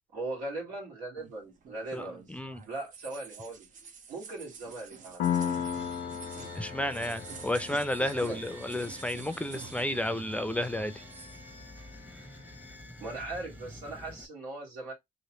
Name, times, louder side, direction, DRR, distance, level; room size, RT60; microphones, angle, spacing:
voice 1, 0.1-2.3 2.7-3.7 4.1-5.5 8.0-8.4 13.0-14.9, right 2 dB, 85° right, 2.0 m, -39 dB
sound 1, 1.2-10.3 10.5-11.4, right 6 dB, 60° right, 0.8 m, -49 dB
voice 2, 1.9-2.6 6.5-11.0, left 1 dB, 10° left, 0.5 m, -32 dB
Piano, 5.2-12.6, left 9 dB, 80° left, 0.6 m, -37 dB
sound 2, 5.3-14.3, equal, 10° right, 0.9 m, -48 dB
3.1 x 2.9 x 2.9 m
supercardioid pair, 65°, 15 cm